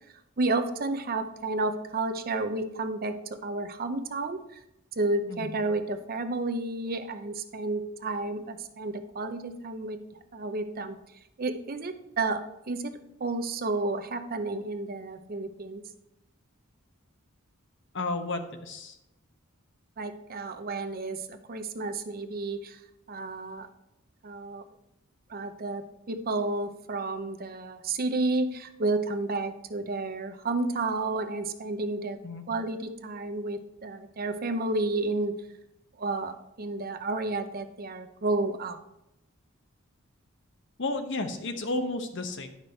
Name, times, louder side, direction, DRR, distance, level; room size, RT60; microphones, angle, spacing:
voice 1, 0.4-4.6 5.0-10.0 10.3-11.0 11.4-15.8 20.0-22.8 23.1-23.7 24.2-24.6 25.3-32.2 32.5-35.3 36.0-38.8, right 2 dB, 45° right, 8 dB, 0.7 m, -31 dB
voice 2, 5.3-5.6 17.9-19.0 32.2-32.4 40.8-42.5, left 2 dB, 60° left, 7 dB, 0.9 m, -32 dB
9.4 x 5.9 x 4.4 m, 0.88 s
head